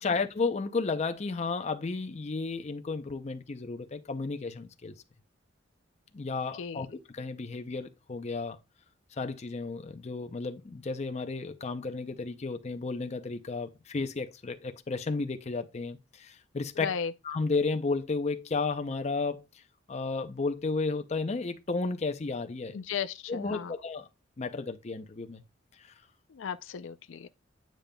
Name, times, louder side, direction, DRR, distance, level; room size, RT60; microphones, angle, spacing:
voice 1, 0.0-4.9 6.1-8.6 9.2-16.9 17.2-19.4 19.9-22.8 23.3-24.1 24.4-25.4, left 3 dB, 35° left, 0.5 m, -33 dB
voice 2, 16.8-17.1 22.7-23.7 26.3-27.3, left 7 dB, 85° left, 0.4 m, -35 dB
9.1 x 5.1 x 2.2 m
head